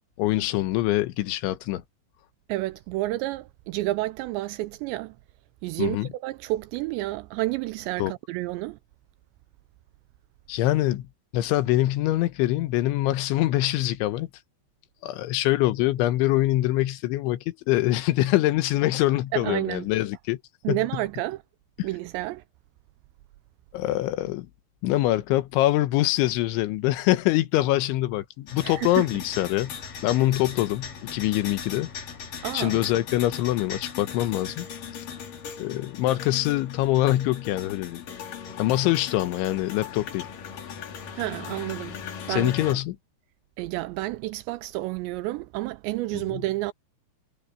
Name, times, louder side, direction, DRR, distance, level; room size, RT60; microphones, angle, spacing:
voice 1, 0.2-1.8 5.8-6.1 8.0-8.1 10.5-11.1 11.3-14.3 15.0-20.4 20.7-20.8 21.8-21.9 23.7-24.5 24.8-29.7 30.0-31.9 32.5-34.7 35.6-38.0 38.6-40.3 42.3-43.0 46.3-46.4, left 16 dB, 85° left, 3.3 m, -24 dB
voice 2, 2.5-5.2 5.6-8.8 19.3-19.9 20.6-21.4 21.8-22.4 28.6-29.2 32.4-32.8 41.1-42.0 42.3-42.8 43.6-46.7, right 18 dB, 85° right, 2.6 m, -30 dB
sound 1, 28.5-42.7, left 7 dB, 50° left, 3.7 m, -39 dB
omnidirectional pair, 5.5 m